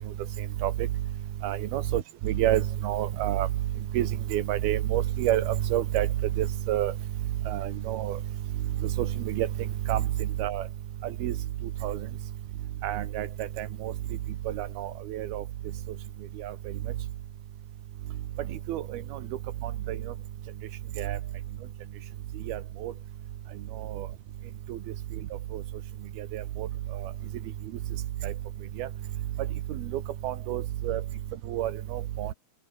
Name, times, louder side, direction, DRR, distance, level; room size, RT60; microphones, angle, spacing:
voice 1, 1.4-3.5 3.9-6.1 6.4-6.9 7.5-8.2 8.8-10.6 11.0-11.4 11.8-12.0 12.8-13.9 14.5-15.4 16.4-16.6 18.7-19.2 19.6-20.0 21.0-21.2 22.5-22.9 23.8-24.1 24.7-24.8 25.5-25.6 26.2-26.7 27.0-27.1 28.2-28.3 28.8-28.9 29.7-31.0 31.5-32.3, right 13 dB, 90° right, 3.4 m, -29 dB
omnidirectional pair, 4.3 m